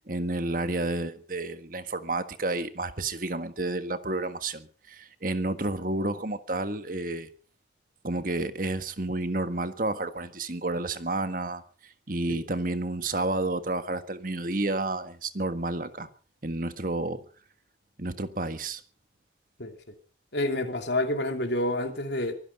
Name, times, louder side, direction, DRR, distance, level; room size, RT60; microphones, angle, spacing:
voice 1, 0.1-7.3 8.0-16.1 16.4-17.2 18.0-18.8, right 2 dB, 50° right, 1.6 m, -30 dB
voice 2, 20.3-22.3, left 1 dB, 70° left, 2.8 m, -28 dB
24.0 x 10.5 x 5.3 m
head